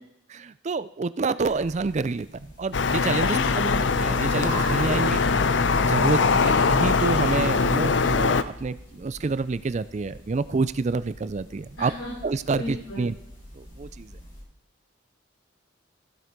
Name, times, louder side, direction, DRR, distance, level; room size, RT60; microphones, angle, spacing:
voice 1, 0.3-3.4 4.0-5.6 5.9-11.9 12.2-13.1 13.6-14.1, right 4 dB, 35° right, 16 dB, 0.4 m, -28 dB
sound 1, 1.4-14.4, equal, 40° left, 4.4 m, -44 dB
sound 2, 2.7-8.4, left 4 dB, 60° left, 0.6 m, -22 dB
voice 2, 3.3-3.8 6.2-6.3 11.8-12.1 12.6-13.0, equal, 80° left, -4 dB, 3.7 m, -33 dB
15.0 x 7.9 x 5.2 m, 0.78 s
head